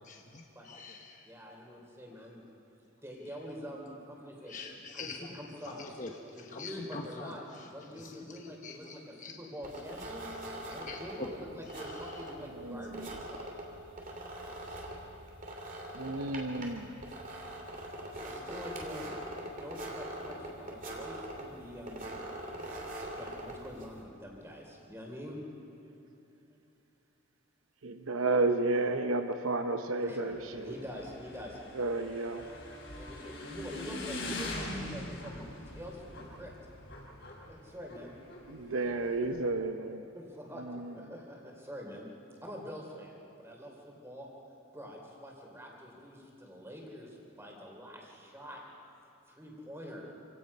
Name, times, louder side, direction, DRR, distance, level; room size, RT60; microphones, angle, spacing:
voice 1, 0.0-1.3 4.4-5.4 5.6-9.3 9.7-9.8 10.6-12.4 12.7-12.9 13.3-13.4 15.1-15.2, left 3 dB, 40° left, 1 dB, 1.1 m, -45 dB
voice 2, 1.2-2.4 3.0-4.5 4.9-5.8 6.3-10.3 10.6-13.5 18.2-19.2 19.6-22.1 23.1-25.4 30.0-31.6 33.0-35.4 35.7-36.5 37.5-38.1 39.0-39.5 40.1-42.1 42.4-44.3 44.7-48.6 49.3-50.0, equal, 10° right, 0 dB, 3.3 m, -45 dB
sound 1, 9.6-24.0, right 1 dB, 40° right, 2.8 m, -43 dB
voice 3, 12.5-13.1 15.9-17.0 27.8-30.7 31.7-32.4 38.4-40.1 40.6-40.9, right 2 dB, 80° right, 7 dB, 0.9 m, -32 dB
Motorcycle / Engine, 30.3-39.5, left 1 dB, 65° left, 5.0 m, -43 dB
27.5 x 17.0 x 5.5 m, 2.9 s
head